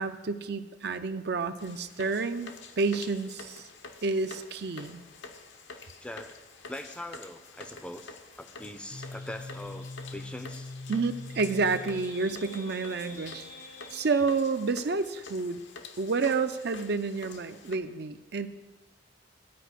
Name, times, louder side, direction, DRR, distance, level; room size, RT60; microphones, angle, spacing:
voice 1, 0.0-3.7 4.0-5.0 10.9-13.5 13.9-15.6 16.0-18.5, right 4 dB, 60° right, 10 dB, 0.5 m, -29 dB
sound 1, 1.6-17.8, left 4 dB, 80° left, 0.9 m, -48 dB
voice 2, 6.0-6.4 6.7-10.7, left 1 dB, 5° left, 8 dB, 0.5 m, -42 dB
sound 2, 8.9-14.3, left 2 dB, 50° left, 0.8 m, -43 dB
12.0 x 5.0 x 8.1 m, 1.1 s
head